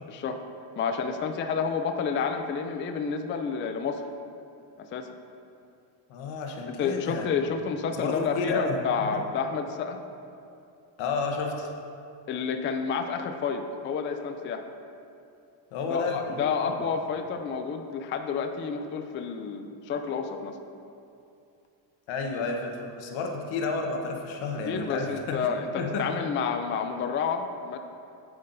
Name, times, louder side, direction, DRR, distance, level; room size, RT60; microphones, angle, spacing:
voice 1, 0.1-0.4 0.8-4.1 4.8-5.1 6.8-10.0 12.3-14.6 15.8-20.6 24.7-27.8, left 5 dB, 30° left, 6 dB, 0.3 m, -30 dB
voice 2, 6.1-7.3 8.0-8.8 11.0-11.7 15.7-16.7 22.1-25.4 25.8-26.1, left 4 dB, 75° left, 2 dB, 1.2 m, -31 dB
9.4 x 7.5 x 2.6 m, 2.6 s
cardioid pair, 120°, 47 cm